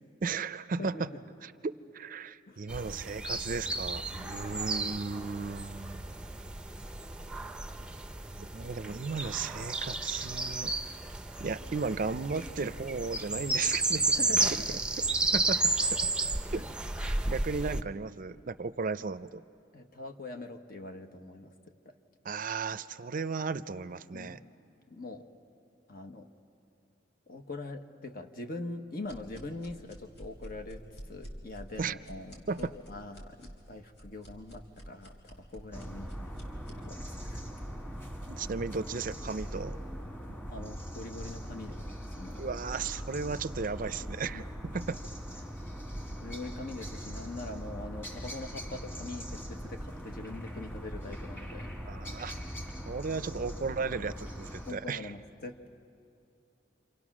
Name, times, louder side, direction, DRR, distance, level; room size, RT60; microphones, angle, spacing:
voice 1, 0.2-1.1 1.4-6.1 8.4-10.9 11.4-14.2 14.5-14.6 15.3-16.1 16.5-16.6 17.3-19.4 22.2-24.4 31.8-32.0 32.5-32.7 38.3-39.8 40.3-40.4 42.4-45.0 51.9-52.4 52.9-55.1, right 4 dB, 50° right, 13 dB, 0.5 m, -35 dB
voice 2, 0.8-1.2 2.5-2.7 4.2-4.4 14.1-14.8 16.6-16.7 19.7-21.5 21.8-21.9 24.1-24.4 24.9-25.3 25.9-26.3 27.3-36.3 36.7-37.4 38.4-38.6 40.5-41.9 42.2-42.5 44.2-44.4 46.2-51.8 54.7-55.7, left 2 dB, 55° left, 5 dB, 1.4 m, -43 dB
sound 1, 2.7-17.8, right 2 dB, 5° right, 0.7 m, -32 dB
sound 2, 29.0-36.9, equal, 75° left, 4.0 m, -49 dB
sound 3, 35.7-54.7, equal, 15° left, 2.2 m, -41 dB
29.5 x 27.0 x 6.2 m, 2.6 s
head